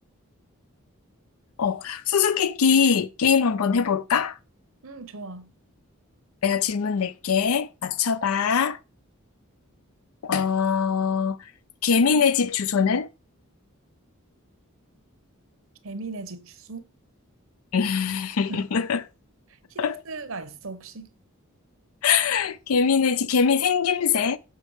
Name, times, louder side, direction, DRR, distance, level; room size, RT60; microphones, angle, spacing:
voice 1, 1.6-4.4 6.4-8.8 10.2-11.5 11.8-13.1 17.7-19.0 19.8-20.0 22.0-24.4, left 6 dB, 75° left, 0.5 m, -22 dB
voice 2, 4.8-5.5 15.8-16.9 18.5-18.7 19.5-21.1, right 3 dB, 65° right, 0.9 m, -38 dB
6.8 x 5.2 x 4.7 m
head